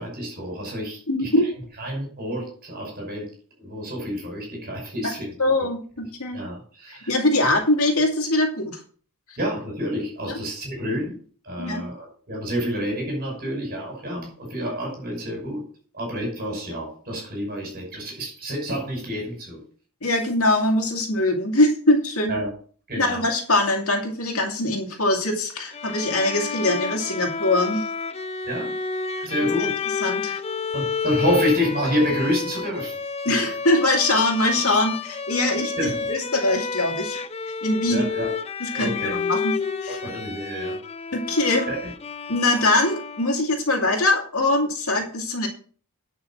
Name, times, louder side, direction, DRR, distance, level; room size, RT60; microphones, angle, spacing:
voice 1, 0.0-1.3 1.8-3.3 3.6-5.3 6.3-7.1 9.4-11.1 11.4-15.6 15.9-19.6 22.3-22.5 22.9-23.2 28.5-28.7 29.2-29.8 30.7-32.9 35.6-36.1 37.9-38.3 38.7-39.2 39.9-40.8 41.5-41.8, equal, 45° right, 0 dB, 5.8 m, -28 dB
voice 2, 1.1-1.5 5.0-5.1 5.4-6.4 6.9-8.8 11.6-11.8 20.0-22.4 23.0-27.9 29.2-29.3 30.0-30.4 33.2-37.2 37.6-38.1 38.6-39.5 39.8-40.0 41.1-41.6 42.3-45.5, left 2 dB, 70° left, 2 dB, 2.4 m, -22 dB
Bowed string instrument, 25.7-43.5, left 5 dB, 30° left, 0.6 m, -30 dB
10.5 x 6.0 x 5.9 m, 0.43 s
head